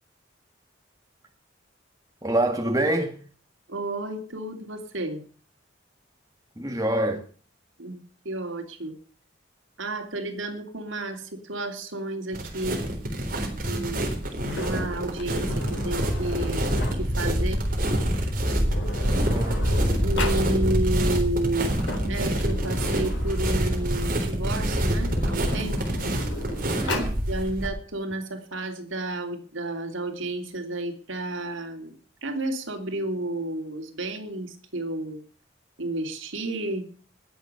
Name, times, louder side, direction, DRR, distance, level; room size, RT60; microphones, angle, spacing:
voice 1, 2.2-3.1 6.6-7.2 19.2-19.6 26.8-27.2, right 1 dB, 15° right, 1.8 m, -26 dB
voice 2, 3.7-5.2 7.8-8.0 8.2-8.9 9.8-12.8 13.6-14.1 14.6-16.6 16.9-17.6 20.0-21.8 22.1-25.8 27.3-31.9 32.2-35.2 35.8-36.9, right 2 dB, 80° right, 3.2 m, -31 dB
sound 1, 12.3-27.7, equal, 45° right, 3.9 m, -26 dB
Sliding door, 14.4-17.3 18.3-18.4 18.6-20.5 21.6-24.1 24.9-27.2, left 1 dB, 70° left, 4.0 m, -36 dB
19.5 x 7.2 x 6.8 m
head